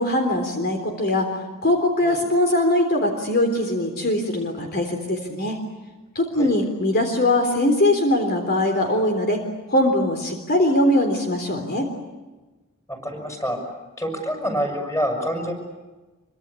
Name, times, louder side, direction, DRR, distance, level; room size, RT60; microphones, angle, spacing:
voice 1, 0.0-1.4 1.6-5.6 6.2-9.4 9.7-11.9, left 1 dB, 50° left, 4 dB, 3.7 m, -21 dB
voice 2, 12.9-15.5, equal, 15° left, 4 dB, 6.6 m, -27 dB
26.5 x 24.5 x 8.5 m, 1.2 s
head